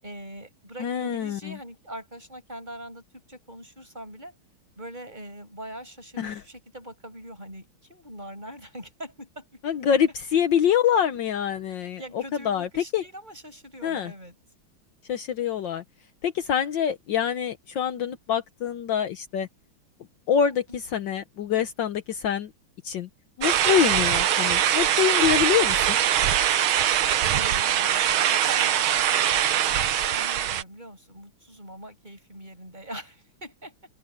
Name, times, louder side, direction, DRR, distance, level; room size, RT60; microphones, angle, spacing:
voice 1, 0.0-4.3 4.8-9.9 12.0-14.4 20.7-20.8 27.3-33.7, right 1 dB, 20° right, 7.7 m, -42 dB
voice 2, 0.8-1.6 6.2-6.4 9.6-12.7 12.9-13.0 13.8-14.1 15.1-15.8 16.2-19.5 20.3-22.5 22.8-23.1 23.4-26.0, left 9 dB, 65° left, 1.6 m, -25 dB
sound 1, 23.4-30.6, right 10 dB, 85° right, 1.8 m, -22 dB
open air
omnidirectional pair, 2.2 m